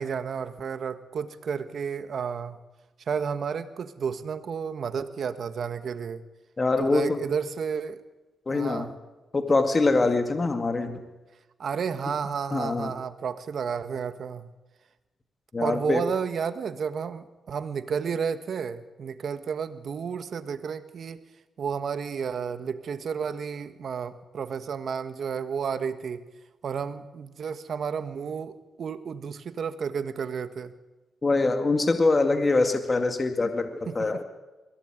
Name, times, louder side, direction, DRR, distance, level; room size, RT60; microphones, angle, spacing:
voice 1, 0.0-2.6 3.1-6.2 6.8-8.0 8.5-8.9 11.6-14.5 15.6-21.2 21.6-26.3 26.6-30.7 33.9-34.2, right 6 dB, 65° right, 11 dB, 1.5 m, -32 dB
voice 2, 6.6-7.2 8.5-8.9 9.3-11.0 12.5-12.9 15.5-16.0 31.2-34.2, left 3 dB, 35° left, 6 dB, 2.2 m, -24 dB
22.0 x 17.0 x 9.1 m, 1.1 s
cardioid pair, 70°, 0 cm